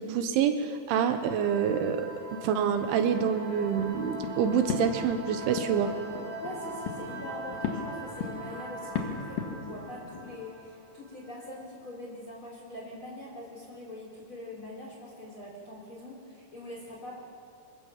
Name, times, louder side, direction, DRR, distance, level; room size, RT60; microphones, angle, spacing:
voice 1, 0.0-2.1 2.4-5.9, right 7 dB, 85° right, 7 dB, 3.7 m, -27 dB
sound 1, 1.1-11.5, right 2 dB, 60° right, 5.9 m, -42 dB
sound 2, 2.8-10.4, left 6 dB, 55° left, 3.1 m, -38 dB
voice 2, 6.4-17.2, left 1 dB, 30° left, -3 dB, 4.3 m, -43 dB
25.0 x 21.0 x 7.3 m, 2.4 s
omnidirectional pair, 5.3 m